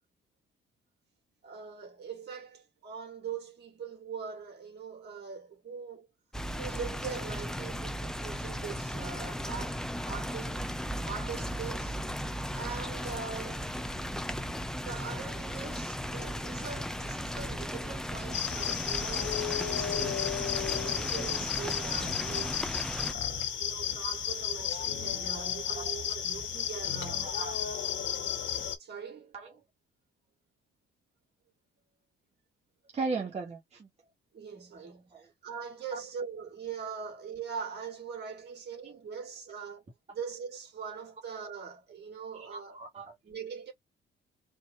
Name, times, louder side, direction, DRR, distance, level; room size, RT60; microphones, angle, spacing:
voice 1, 1.4-6.1 6.6-10.7 11.0-12.0 12.5-13.8 14.8-22.6 23.6-27.4 28.8-29.4 34.3-39.8 40.1-42.8 43.2-43.7, right 6 dB, 55° right, 2.6 m, -42 dB
sound 1, 6.3-23.1, equal, 5° left, 0.6 m, -36 dB
sound 2, 18.3-28.8, left 9 dB, 70° left, 1.6 m, -33 dB
voice 2, 25.8-26.2 27.2-27.5 29.3-29.5 32.9-33.9 34.8-35.3 35.9-36.0 42.3-43.1, right 4 dB, 35° right, 1.5 m, -37 dB
4.5 x 2.3 x 3.7 m
cardioid pair, 90°, 20 cm